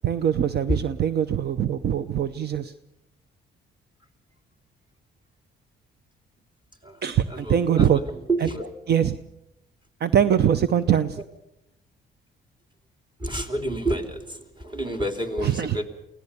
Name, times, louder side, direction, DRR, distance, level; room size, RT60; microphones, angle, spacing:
voice 1, 0.0-2.7 7.0-8.0 8.4-8.5 8.9-9.2 10.0-11.2 15.4-15.8, right 9 dB, 55° right, 13 dB, 0.7 m, -22 dB
voice 2, 7.3-8.7 13.2-15.9, right 1 dB, 25° right, 6 dB, 3.0 m, -29 dB
23.5 x 17.0 x 6.9 m, 0.87 s
cardioid pair, 90°, 20 cm